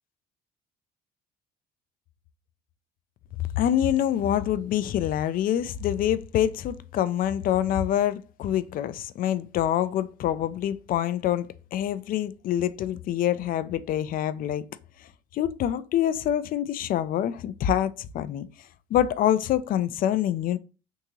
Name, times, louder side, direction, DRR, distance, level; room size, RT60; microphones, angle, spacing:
voice 1, 3.4-14.7 15.0-18.5 18.9-20.6, left 11 dB, 55° left, 0.4 m, -26 dB
3.6 x 2.7 x 3.0 m
cardioid pair, 110°, 17 cm